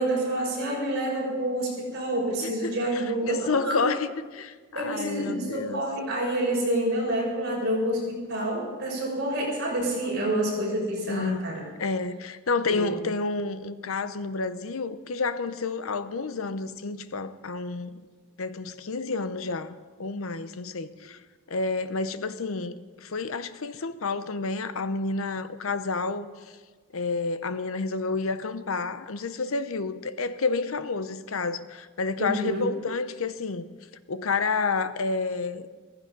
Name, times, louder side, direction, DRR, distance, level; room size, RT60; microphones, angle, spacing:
voice 1, 0.0-3.8 4.7-11.6 12.7-12.9 32.2-32.7, right 1 dB, 50° right, 6.5 m, -28 dB
voice 2, 2.4-5.8 11.1-11.5 11.8-18.0 18.4-21.2 21.5-26.3 26.9-33.7 34.1-35.6, left 4 dB, 75° left, 0.8 m, -30 dB
15.5 x 15.0 x 5.3 m
head